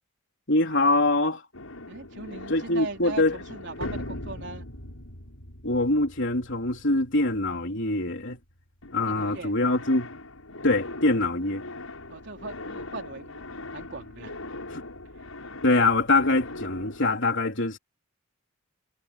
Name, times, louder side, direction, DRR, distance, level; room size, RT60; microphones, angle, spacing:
voice 1, 0.5-1.4 2.5-3.4 5.6-8.4 8.9-10.1 10.6-11.6 14.7-14.8 15.6-17.8, left 2 dB, 60° left, 4.0 m, -24 dB
sound 1, 1.5-8.5 8.8-17.2, left 2 dB, 85° left, 7.6 m, -41 dB
voice 2, 1.9-4.7 9.1-9.5 12.1-14.3, right 3 dB, 55° right, 3.7 m, -39 dB
head